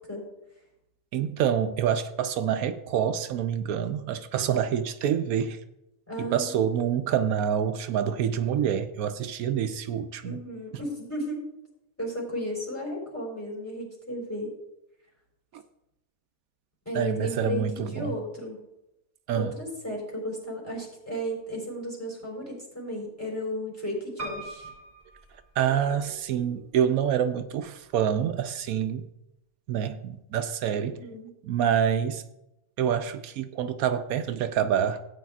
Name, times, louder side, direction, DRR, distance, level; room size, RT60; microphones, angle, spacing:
voice 1, 1.1-5.6 6.2-10.4 15.5-15.6 16.9-18.2 19.3-19.5 25.6-29.1 29.7-31.0 31.4-32.2 32.8-35.0, right 8 dB, 80° right, 1.0 m, -27 dB
voice 2, 6.1-6.5 10.2-11.4 12.0-14.5 16.9-18.6 19.3-24.7 31.0-31.3, equal, 10° left, 4.1 m, -34 dB
Piano, 24.2-26.2 26.8-27.5 27.8-27.9 28.1-28.2, right 2 dB, 10° right, 3.0 m, -41 dB
16.5 x 8.8 x 2.4 m
omnidirectional pair, 1.5 m